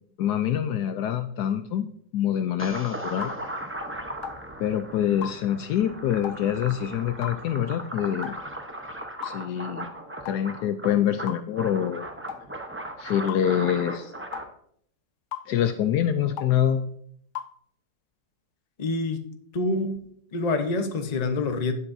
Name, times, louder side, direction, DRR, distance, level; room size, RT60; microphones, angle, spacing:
voice 1, 0.2-1.9 2.1-3.3 4.6-8.3 9.2-9.9 10.2-12.1 13.0-14.1 15.5-16.8, left 10 dB, 70° left, 1.1 m, -25 dB
sound 1, 2.6-14.4, right 1 dB, 15° right, 0.4 m, -37 dB
sound 2, 3.2-3.4 4.2-4.4 5.2-5.4 6.2-6.4 7.2-7.4 8.2-8.4 9.2-9.4 10.3-10.4 11.3-11.5 12.3-12.4 13.3-13.5 14.3-14.5 15.3-15.5 16.4-16.6 17.4-17.5, left 10 dB, 85° left, 0.6 m, -36 dB
voice 2, 18.8-19.2 19.5-20.1 20.3-21.7, left 3 dB, 30° left, 0.8 m, -26 dB
15.0 x 8.1 x 2.7 m
omnidirectional pair, 2.0 m